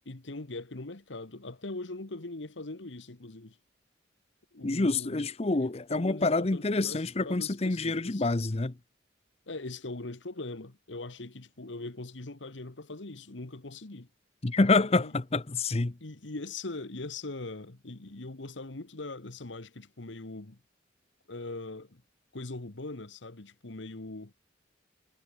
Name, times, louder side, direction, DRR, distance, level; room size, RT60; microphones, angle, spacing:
voice 1, 0.0-3.6 4.5-8.2 9.5-14.1 14.8-15.1 16.0-20.6 21.3-22.0 22.3-24.3, left 2 dB, 85° left, 1.5 m, -41 dB
voice 2, 4.6-8.7 14.4-15.9, left 3 dB, 35° left, 0.8 m, -27 dB
head